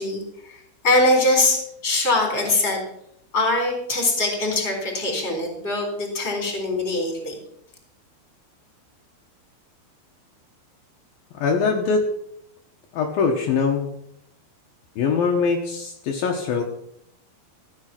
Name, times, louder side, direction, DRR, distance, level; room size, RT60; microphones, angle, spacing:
voice 1, 0.0-2.8 3.3-7.4, left 2 dB, 15° left, 2 dB, 3.9 m, -22 dB
voice 2, 11.3-12.0 12.9-13.9 15.0-16.6, left 5 dB, 70° left, 1 dB, 2.9 m, -22 dB
15.0 x 8.8 x 6.0 m, 0.73 s
omnidirectional pair, 4.6 m